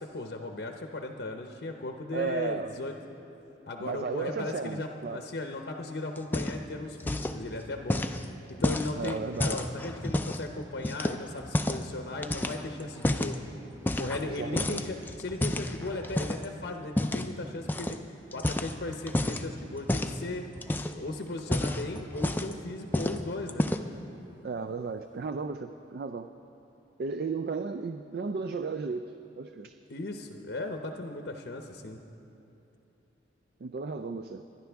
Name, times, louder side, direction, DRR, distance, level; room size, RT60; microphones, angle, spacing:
voice 1, 0.0-2.9 3.7-8.1 8.6-13.4 13.8-18.0 18.3-20.4 20.9-23.7 29.9-32.0, left 2 dB, 65° left, 3 dB, 0.8 m, -37 dB
voice 2, 2.1-2.7 3.8-5.2 8.9-9.6 14.3-14.8 24.4-26.3 27.0-29.7 33.6-34.4, right 4 dB, 55° right, 9 dB, 0.4 m, -34 dB
sound 1, 6.2-6.7 7.0-7.4 7.9-10.4 10.8-11.9 12.2-13.4 13.8-14.3 14.6-16.5 17.0-17.3 17.7-18.0 18.3-19.4 19.9-20.2 20.6-21.0 21.4-22.6 22.9-23.2 23.5-24.0, left 1 dB, 10° left, 0.4 m, -30 dB
23.5 x 10.5 x 3.5 m, 2.9 s
head